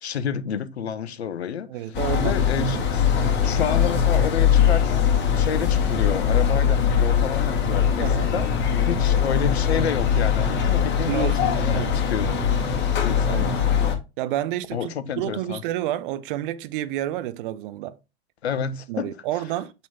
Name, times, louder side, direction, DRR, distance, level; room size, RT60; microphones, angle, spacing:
voice 1, 0.0-3.1 3.4-12.4 13.0-13.6 14.7-15.6 18.4-19.2, left 7 dB, 75° left, 0.8 m, -29 dB
voice 2, 1.7-2.8 8.0-8.3 11.0-12.0 13.3-13.5 14.2-18.0 18.9-19.7, right 13 dB, 50° right, 0.7 m, -30 dB
sound 1, 1.9-14.0, left 7 dB, 35° left, 2.1 m, -21 dB
8.4 x 4.0 x 3.6 m
figure-of-eight pair, 90°, 33 cm